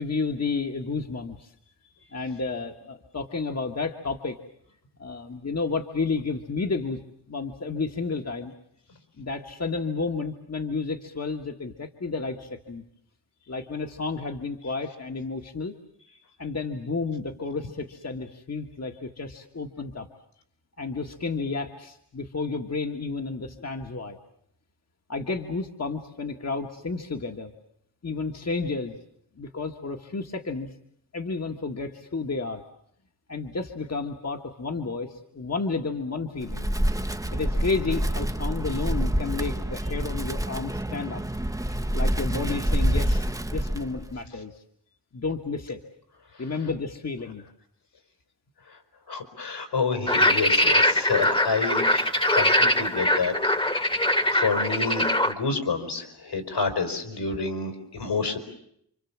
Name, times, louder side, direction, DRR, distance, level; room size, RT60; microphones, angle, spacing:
voice 1, 0.0-1.5 2.1-4.4 5.0-7.0 7.3-8.5 9.2-12.8 13.5-15.7 16.4-20.1 20.8-24.2 25.1-27.5 28.0-29.0 29.4-30.7 31.1-32.6 33.3-36.7 37.3-41.2 41.9-43.3 43.5-44.6 45.1-45.8 46.4-47.4, left 4 dB, 40° left, 3 dB, 1.8 m, -31 dB
Wind, 36.4-44.2, right 1 dB, 10° right, 1.1 m, -27 dB
voice 2, 49.1-53.3 53.7-53.9 54.3-58.4, left 4 dB, 75° left, 7 dB, 5.3 m, -29 dB
sound 1, 50.1-55.3, left 1 dB, 15° left, 1.6 m, -22 dB
29.0 x 26.0 x 7.4 m, 0.71 s
wide cardioid pair, 90°, 40 cm